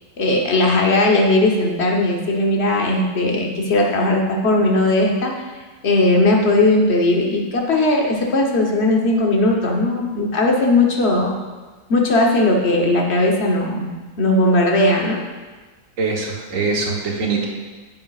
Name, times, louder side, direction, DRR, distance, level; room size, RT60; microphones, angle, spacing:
voice 1, 0.2-5.3 5.8-11.4 11.9-13.9 14.2-15.2, left 2 dB, 45° left, 0 dB, 1.2 m, -18 dB
voice 2, 16.0-17.5, right 4 dB, 55° right, -1 dB, 1.5 m, -22 dB
10.5 x 7.6 x 2.4 m, 1.3 s
omnidirectional pair, 1.8 m